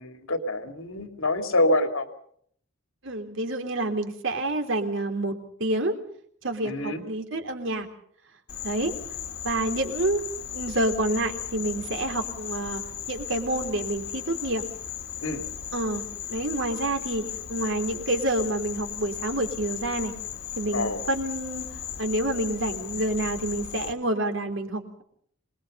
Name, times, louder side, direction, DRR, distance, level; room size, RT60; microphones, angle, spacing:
voice 1, 0.0-2.1 6.6-7.0 15.2-15.5 20.7-21.0, left 1 dB, 75° left, 7 dB, 2.8 m, -26 dB
voice 2, 3.0-5.9 6.4-7.9 8.6-8.9 9.4-10.2 10.5-12.8 13.1-14.6 15.7-16.0 16.3-17.2 17.5-20.1 20.6-21.7 22.0-25.0, right 1 dB, 65° right, 5 dB, 3.5 m, -28 dB
Insect, 8.5-23.9, left 9 dB, 60° left, 2.2 m, -36 dB
26.5 x 21.0 x 5.5 m, 0.64 s
head